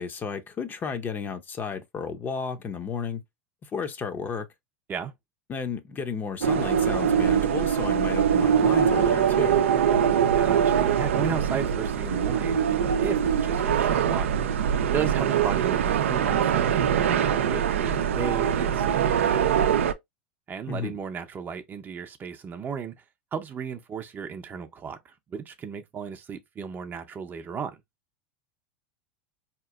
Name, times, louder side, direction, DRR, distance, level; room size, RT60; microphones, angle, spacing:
voice 1, 0.0-3.2 3.6-4.5 5.5-9.6 20.7-21.0, left 6 dB, 30° left, 0.6 m, -33 dB
strong-wind, 6.4-19.9, right 8 dB, 85° right, 0.4 m, -23 dB
voice 2, 10.4-14.3 14.9-19.6 20.5-23.0 23.3-27.8, right 6 dB, 30° right, 0.6 m, -35 dB
4.1 x 2.9 x 2.3 m
hypercardioid pair, 105°, 7 cm